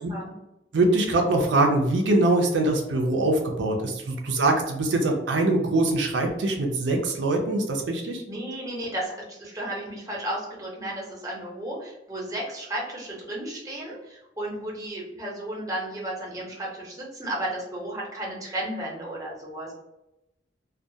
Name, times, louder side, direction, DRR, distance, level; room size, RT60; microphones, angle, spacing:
voice 1, 0.7-8.2, right 2 dB, 80° right, 2 dB, 0.4 m, -23 dB
voice 2, 8.2-19.7, right 1 dB, 20° right, -3 dB, 0.7 m, -33 dB
2.2 x 2.2 x 2.7 m, 0.90 s
head